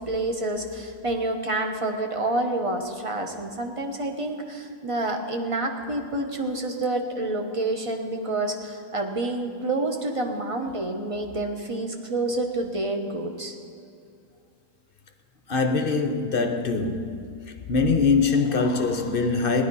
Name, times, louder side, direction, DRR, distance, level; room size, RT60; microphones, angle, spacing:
voice 1, 0.0-13.5, right 2 dB, 25° right, 0.9 m, -28 dB
voice 2, 15.5-17.3 17.7-19.7, left 4 dB, 45° left, 0.8 m, -23 dB
16.5 x 11.0 x 5.5 m
omnidirectional pair, 1.7 m